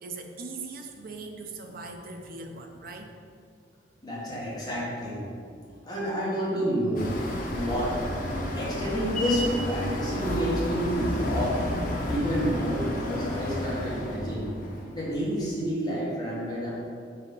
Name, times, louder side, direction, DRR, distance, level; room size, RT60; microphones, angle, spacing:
voice 1, 0.0-3.2, right 3 dB, 50° right, 3 dB, 0.6 m, -40 dB
voice 2, 4.0-5.3 5.8-7.2 7.5-8.1 8.5-11.8 12.1-14.5 14.9-16.7, equal, 20° left, -7 dB, 1.6 m, -29 dB
sound 1, 7.0-15.3, left 1 dB, 50° left, 0.9 m, -31 dB
5.1 x 4.2 x 5.5 m, 2.3 s
head